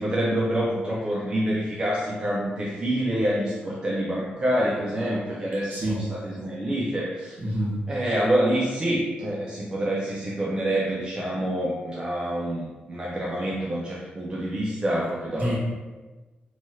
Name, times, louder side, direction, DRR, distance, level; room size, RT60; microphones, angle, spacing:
voice 1, 0.0-7.4 7.9-15.5, right 1 dB, 25° right, -5 dB, 0.4 m, -27 dB
voice 2, 5.7-6.0 7.4-7.8 15.3-15.6, right 1 dB, 50° right, -6 dB, 1.1 m, -27 dB
3.0 x 2.2 x 2.7 m, 1.2 s
wide cardioid pair, 135°, 3 cm